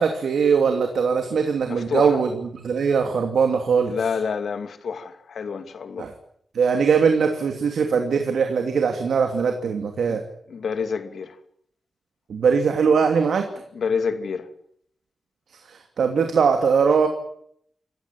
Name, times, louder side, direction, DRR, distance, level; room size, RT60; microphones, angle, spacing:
voice 1, 0.0-3.9 6.0-6.1 6.5-10.2 12.3-13.5 15.6-17.1, right 6 dB, 90° right, 2.8 m, -21 dB
voice 2, 1.7-2.2 3.9-6.1 10.1-10.2 10.5-11.4 13.7-14.5, left 5 dB, 75° left, 2.5 m, -28 dB
27.0 x 15.5 x 9.0 m
wide cardioid pair, 110°, 0 cm